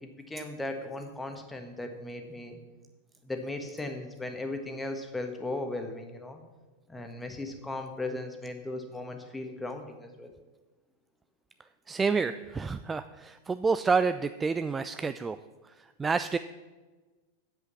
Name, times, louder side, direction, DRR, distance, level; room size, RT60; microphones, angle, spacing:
voice 1, 0.0-2.6 3.2-6.4 6.9-10.3, left 2 dB, 10° left, 5 dB, 1.4 m, -37 dB
voice 2, 11.9-15.4 15.7-16.4, right 4 dB, 15° right, 11 dB, 0.3 m, -29 dB
8.0 x 8.0 x 7.3 m, 1.2 s
figure-of-eight pair, 90°, 0 cm